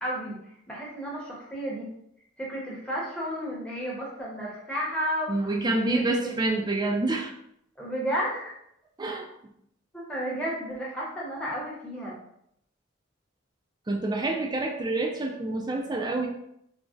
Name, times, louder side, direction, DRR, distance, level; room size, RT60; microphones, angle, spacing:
voice 1, 0.0-0.4 0.7-1.9 2.4-6.4 7.8-8.6 9.9-12.1, equal, 5° left, -5 dB, 0.7 m, -32 dB
voice 2, 5.3-7.3 9.0-9.3 13.9-16.3, right 2 dB, 20° right, 2 dB, 0.3 m, -27 dB
3.8 x 2.0 x 2.4 m, 0.74 s
head